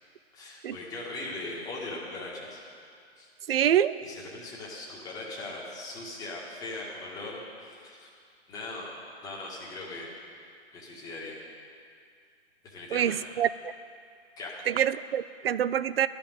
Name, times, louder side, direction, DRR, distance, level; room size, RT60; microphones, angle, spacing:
voice 1, 0.3-2.6 3.2-3.7 4.0-8.1 8.5-8.9 9.2-10.1 10.7-11.4 12.6-13.2 14.4-14.5, left 2 dB, 10° left, -4 dB, 1.7 m, -40 dB
voice 2, 3.5-3.9 12.9-13.5 14.7-16.1, right 10 dB, 65° right, 15 dB, 0.5 m, -25 dB
12.5 x 6.1 x 9.2 m, 2.3 s
hypercardioid pair, 145°, 32 cm